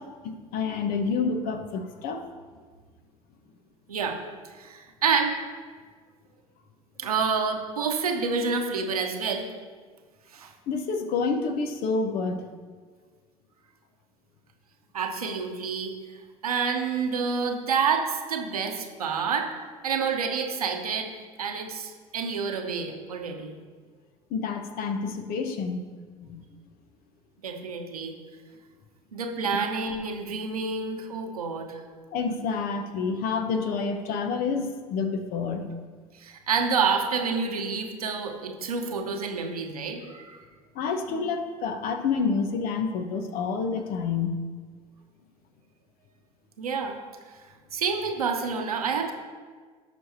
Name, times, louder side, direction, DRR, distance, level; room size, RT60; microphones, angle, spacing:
voice 1, 0.0-2.2 10.7-12.4 24.3-25.8 26.2-26.4 32.1-35.7 40.7-44.4, left 5 dB, 55° left, 7 dB, 1.2 m, -28 dB
voice 2, 4.6-5.3 7.0-9.5 10.3-10.5 14.9-15.9 16.4-19.5 19.8-21.1 21.4-23.5 27.4-28.1 29.1-31.8 36.2-40.4 46.6-47.0 47.7-49.1, right 5 dB, 80° right, 3 dB, 1.2 m, -28 dB
16.5 x 6.3 x 2.9 m, 1.5 s
figure-of-eight pair, 65°, 19 cm